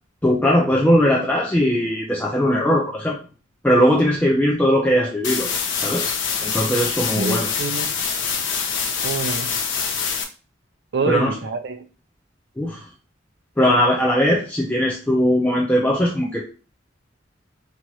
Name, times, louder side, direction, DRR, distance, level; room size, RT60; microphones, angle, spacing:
voice 1, 0.2-3.2 3.6-6.1 6.4-7.5 11.1-11.3 12.6-12.8 13.6-16.5, equal, 10° left, 0.3 m, -19 dB
sound 1, 5.2-10.2, left 6 dB, 70° left, 0.5 m, -25 dB
voice 2, 7.1-8.1 9.0-9.5 10.9-11.8, right 4 dB, 60° right, 0.5 m, -26 dB
2.8 x 2.3 x 3.0 m
head